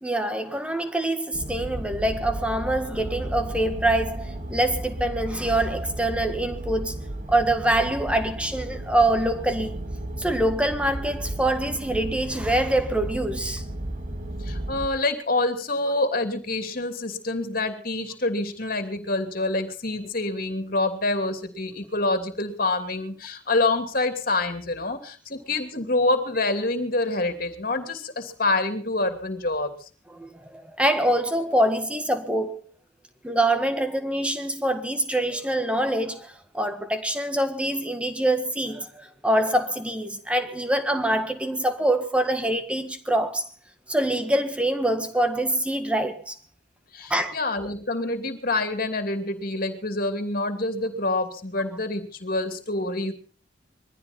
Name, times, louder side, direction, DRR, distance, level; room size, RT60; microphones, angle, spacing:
voice 1, 0.0-7.0 7.3-9.8 10.2-13.6 30.2-32.6 33.2-43.5 43.9-46.3 47.1-47.4, right 1 dB, 5° right, 1.6 m, -25 dB
sound 1, 1.3-14.9, right 1 dB, 40° right, 2.3 m, -34 dB
voice 2, 14.4-29.9 46.9-53.1, left 2 dB, 50° left, 2.9 m, -26 dB
22.0 x 15.0 x 4.4 m
head